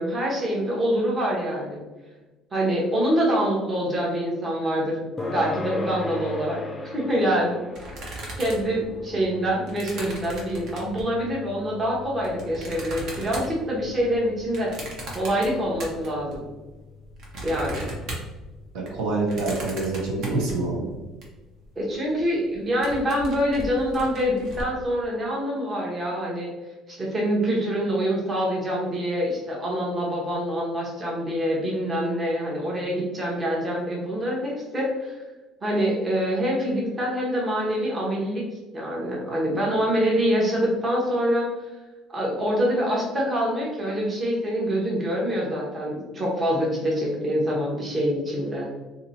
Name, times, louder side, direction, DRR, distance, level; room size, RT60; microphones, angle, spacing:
voice 1, 0.0-1.8 2.5-5.0 5.2-7.6 8.4-14.7 15.1-16.5 17.4-17.9 21.8-26.5 26.9-35.2 35.6-38.4 38.7-41.5 42.1-48.7, equal, 25° right, -3 dB, 1.0 m, -25 dB
sound 1, 5.2-20.1, left 3 dB, 15° left, 0.5 m, -39 dB
sound 2, 7.7-11.2 11.8-16.4 16.7-21.2 21.6-21.7 21.9-22.2 22.5-24.6, right 1 dB, 60° right, 1.1 m, -38 dB
voice 2, 18.7-21.0, right 2 dB, 75° right, -2 dB, 1.1 m, -26 dB
2.8 x 2.7 x 4.0 m, 1.2 s
cardioid pair, 140°, 0 cm